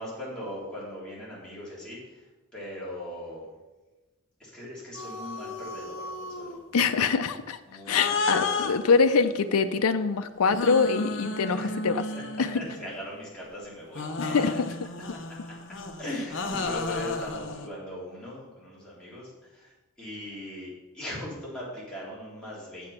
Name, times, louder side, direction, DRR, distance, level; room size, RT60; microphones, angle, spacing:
voice 1, 0.0-2.2 2.5-3.4 4.4-6.6 7.7-8.7 11.4-11.8 12.1-12.2 12.5-14.6 16.0-19.7 20.0-22.9, left 1 dB, 5° left, -8 dB, 3.3 m, -39 dB
sound 1, 4.9-6.6 7.9-9.7 10.5-13.0 13.9-17.7, left 3 dB, 55° left, 0.9 m, -33 dB
voice 2, 6.7-7.6 7.9-12.0 12.4-12.5 14.2-14.7, left 5 dB, 75° left, 8 dB, 0.5 m, -24 dB
7.6 x 7.1 x 5.7 m, 1.1 s
head